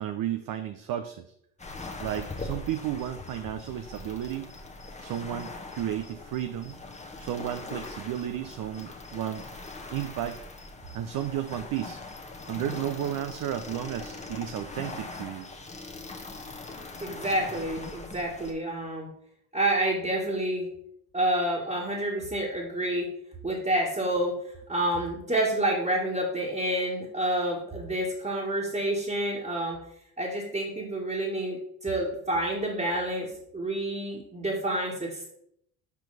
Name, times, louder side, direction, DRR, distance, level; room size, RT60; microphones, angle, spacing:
voice 1, 0.0-1.3 2.0-4.5 5.0-6.8 7.2-9.4 9.9-10.4 10.9-12.0 12.5-15.5, right 11 dB, 45° right, 8 dB, 0.6 m, -33 dB
sound 1, 1.6-18.5, left 3 dB, 15° left, 1.0 m, -41 dB
voice 2, 17.0-19.1 19.5-20.7 21.1-23.1 23.4-29.8 30.2-35.3, right 1 dB, 15° right, -5 dB, 1.7 m, -28 dB
6.9 x 4.5 x 4.0 m, 0.71 s
hypercardioid pair, 55°, 48 cm